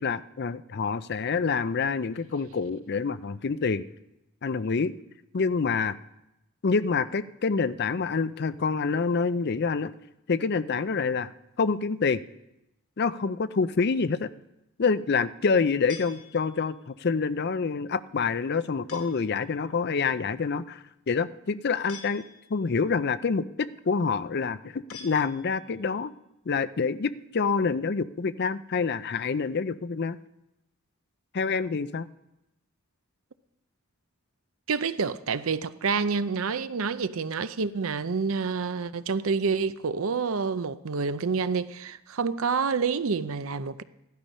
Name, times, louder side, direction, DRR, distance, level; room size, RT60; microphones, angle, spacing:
voice 1, 0.0-3.9 4.4-4.9 5.3-6.0 6.6-9.9 10.3-11.3 11.6-12.2 13.0-14.3 14.8-22.2 22.5-26.1 26.5-30.2 31.3-32.1, left 5 dB, 50° left, 0.5 m, -27 dB
sound 1, 15.9-16.8 18.9-19.4 21.9-22.7 24.9-25.8, left 6 dB, 90° left, 2.2 m, -47 dB
voice 2, 34.7-43.8, right 5 dB, 70° right, 0.6 m, -28 dB
15.0 x 12.0 x 5.5 m
head